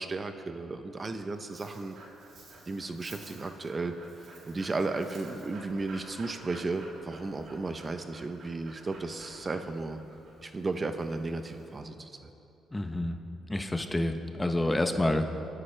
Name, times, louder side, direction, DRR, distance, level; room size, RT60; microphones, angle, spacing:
voice 1, 0.0-2.0 2.7-3.9 4.4-10.0 10.4-12.1, right 3 dB, 30° right, 8 dB, 0.8 m, -34 dB
Dog, 1.0-11.8, right 2 dB, 65° right, 3.5 m, -51 dB
voice 2, 12.7-13.2 13.5-15.3, left 1 dB, 15° left, 7 dB, 0.8 m, -28 dB
27.0 x 9.7 x 3.3 m, 2.9 s
cardioid pair, 90°, 0 cm